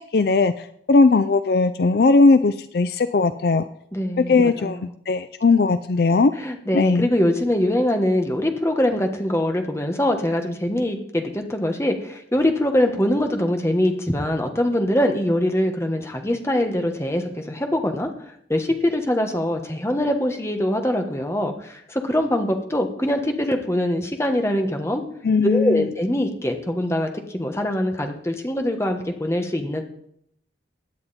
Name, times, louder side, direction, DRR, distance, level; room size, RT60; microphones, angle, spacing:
voice 1, 0.0-3.6 4.2-6.3 6.7-7.1 25.2-25.9, left 3 dB, 55° left, 12 dB, 0.4 m, -18 dB
voice 2, 3.9-4.8 6.4-18.1 18.5-25.0 25.4-29.8, left 1 dB, 15° left, 4 dB, 1.3 m, -23 dB
16.5 x 9.6 x 4.2 m, 0.70 s
head